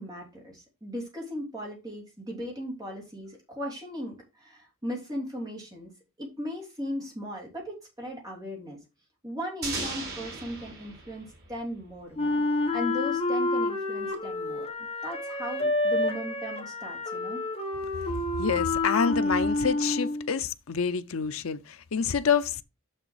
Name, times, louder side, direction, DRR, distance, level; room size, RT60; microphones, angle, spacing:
voice 1, 0.0-5.9 6.2-8.8 9.2-17.4, equal, 15° right, 3.2 m, -37 dB
sound 1, 9.6-12.4, right 3 dB, 50° right, 3.3 m, -37 dB
Wind instrument woodwind instrument, 12.2-20.3, left 2 dB, 25° left, 1.5 m, -29 dB
voice 2, 18.1-22.6, left 6 dB, 70° left, 0.6 m, -28 dB
6.6 x 6.0 x 4.7 m
head